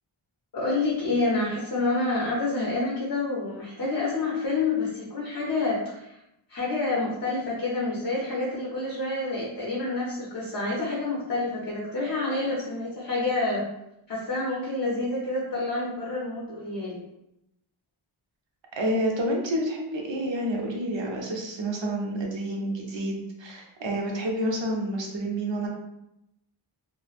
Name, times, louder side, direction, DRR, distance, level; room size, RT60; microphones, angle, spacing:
voice 1, 0.5-6.2 6.5-13.7 14.1-17.0, left 2 dB, 50° left, -5 dB, 0.7 m, -28 dB
voice 2, 18.8-25.7, right 1 dB, 65° right, 0 dB, 0.7 m, -29 dB
3.0 x 2.1 x 2.4 m, 0.85 s
wide cardioid pair, 70°, 50 cm